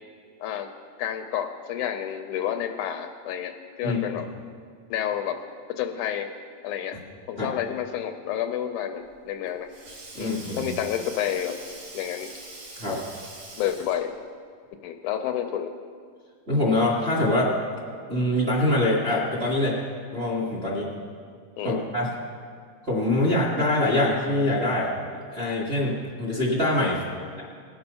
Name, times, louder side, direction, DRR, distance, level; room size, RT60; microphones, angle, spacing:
voice 1, 1.0-4.3 4.9-5.4 5.8-6.3 6.6-7.0 7.3-9.7 10.2-11.6 11.9-12.3 13.6-14.1 14.8-15.7 21.6-21.8 27.2-27.4, left 10 dB, 80° left, 6 dB, 2.0 m, -30 dB
Sink (filling or washing), 9.1-14.2, right 2 dB, 50° right, 2.2 m, -43 dB
voice 2, 10.1-10.6 12.8-13.0 16.5-17.5 18.1-19.8 20.1-20.9 21.6-22.1 22.8-24.9 25.3-27.0, left 1 dB, 25° right, -5 dB, 1.6 m, -24 dB
19.0 x 7.0 x 5.6 m, 2.2 s
omnidirectional pair, 3.7 m